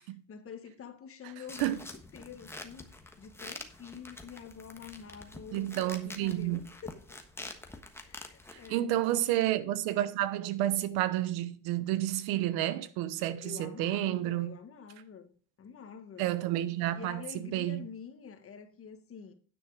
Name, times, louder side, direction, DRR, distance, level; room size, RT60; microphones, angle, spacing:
voice 1, 0.3-2.9 3.2-7.0 8.0-8.9 13.4-15.3 15.6-16.3 16.9-19.3, left 7 dB, 35° left, 1.6 m, -47 dB
sound 1, 1.5-8.7, left 2 dB, 5° left, 1.2 m, -47 dB
voice 2, 5.5-6.6 8.7-14.6 16.2-17.2 17.5-17.8, right 14 dB, 75° right, 1.0 m, -30 dB
9.8 x 6.3 x 4.9 m
supercardioid pair, 110°, 37 cm